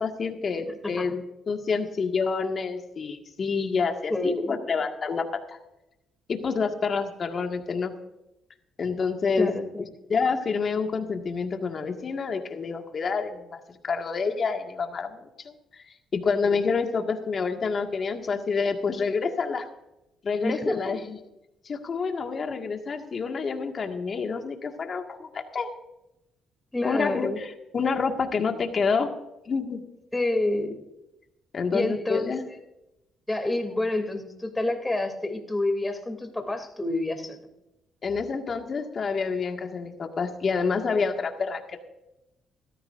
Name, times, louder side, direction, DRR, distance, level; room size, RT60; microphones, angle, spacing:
voice 1, 0.0-5.6 6.3-7.9 8.8-9.5 10.1-15.8 16.1-19.7 20.2-21.2 21.7-25.7 26.8-29.1 29.5-29.8 31.5-32.4 38.0-41.8, left 5 dB, 45° left, 4 dB, 1.8 m, -28 dB
voice 2, 4.1-4.6 9.4-9.9 20.4-20.9 26.7-27.4 30.1-30.8 31.7-32.6 33.3-37.4, left 2 dB, 15° left, 4 dB, 2.8 m, -28 dB
17.5 x 14.0 x 2.6 m, 0.90 s
cardioid pair, 90°, 0 cm